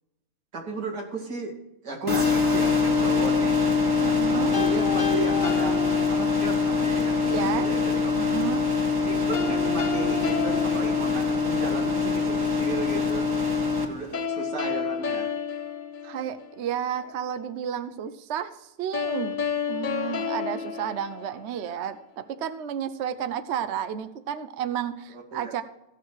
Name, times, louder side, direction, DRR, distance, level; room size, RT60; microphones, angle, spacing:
voice 1, 0.5-1.6 1.8-3.6 4.3-8.4 9.1-13.3 13.8-15.3 25.1-25.5, right 2 dB, 80° right, -1 dB, 3.0 m, -34 dB
sound 1, 2.1-13.8, left 4 dB, 15° right, 1.7 m, -24 dB
voice 2, 4.0-4.5 7.2-7.7 8.2-8.6 16.0-19.4 19.7-25.6, right 9 dB, 55° right, 11 dB, 0.8 m, -32 dB
sound 2, 4.5-6.7 9.3-11.8 14.1-16.7 18.9-21.8, left 6 dB, 45° left, 0.7 m, -31 dB
16.0 x 6.7 x 4.9 m, 0.88 s
omnidirectional pair, 1.8 m